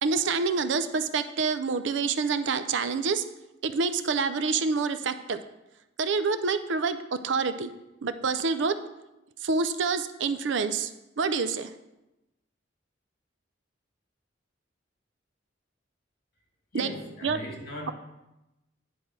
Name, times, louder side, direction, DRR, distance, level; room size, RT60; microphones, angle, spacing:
voice 1, 0.0-3.2 3.6-5.4 6.0-7.7 8.0-8.8 9.4-11.7 16.7-16.9 17.2-17.4, right 4 dB, 70° right, 0.5 m, -27 dB
voice 2, 16.7-17.9, left 1 dB, 55° left, 1.8 m, -39 dB
10.0 x 3.8 x 6.0 m
head